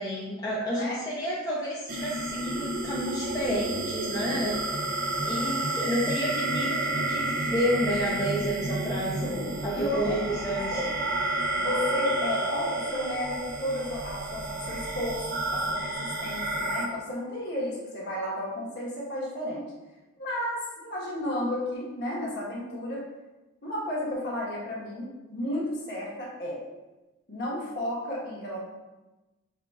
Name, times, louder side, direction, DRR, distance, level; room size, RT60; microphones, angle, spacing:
voice 1, 0.0-4.8 5.2-10.8, equal, 15° left, -7 dB, 0.6 m, -30 dB
sound 1, 1.9-16.9, right 2 dB, 40° right, 0.5 m, -30 dB
voice 2, 9.2-10.4 10.7-10.9 11.6-19.7 20.2-23.0 23.6-26.6 27.3-28.6, left 1 dB, 50° left, -5 dB, 1.4 m, -33 dB
5.8 x 3.6 x 2.4 m, 1.1 s
head